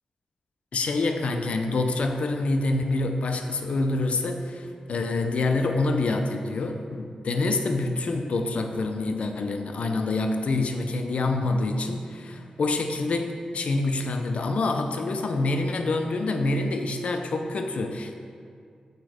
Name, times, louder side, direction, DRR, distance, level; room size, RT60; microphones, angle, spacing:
voice 1, 0.7-18.1, left 2 dB, 70° left, 5 dB, 0.6 m, -26 dB
6.7 x 4.4 x 5.0 m, 2.3 s
cardioid pair, 55°, 2 cm